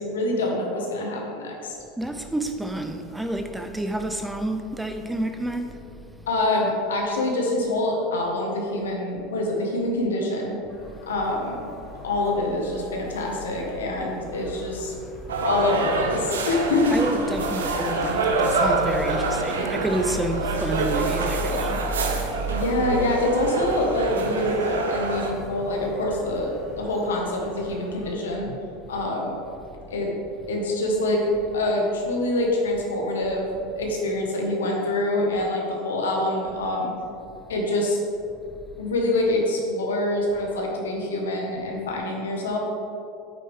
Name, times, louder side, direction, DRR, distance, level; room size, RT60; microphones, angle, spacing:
voice 1, 0.0-1.8 6.3-10.6 11.1-11.6 12.0-14.9 15.4-17.0 22.5-28.5 28.9-29.3 29.9-30.1 30.5-33.5 33.7-36.9 37.5-38.0 38.8-42.6, left 1 dB, 90° left, 1.7 m, -25 dB
voice 2, 2.0-5.9 16.9-21.9 22.5-22.6, right 1 dB, 10° right, 0.6 m, -29 dB
sound 1, 10.7-28.1, right 1 dB, 25° left, 1.9 m, -37 dB
sound 2, 15.3-25.3, right 3 dB, 90° right, 0.9 m, -26 dB
8.7 x 8.2 x 3.7 m
hypercardioid pair, 90°, 0 cm